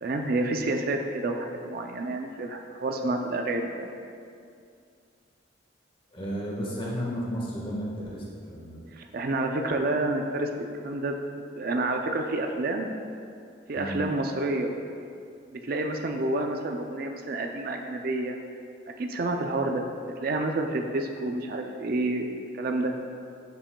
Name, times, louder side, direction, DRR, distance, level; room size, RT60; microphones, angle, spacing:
voice 1, 0.0-3.9 8.9-10.5 10.8-11.2 11.6-12.9 13.7-14.7 15.5-18.4 19.0-19.8 20.2-22.3 22.5-22.9, right 2 dB, 50° right, 3 dB, 0.4 m, -29 dB
voice 2, 6.1-8.8 13.7-14.0, equal, 30° left, -4 dB, 1.4 m, -33 dB
8.6 x 7.4 x 2.2 m, 2.4 s
head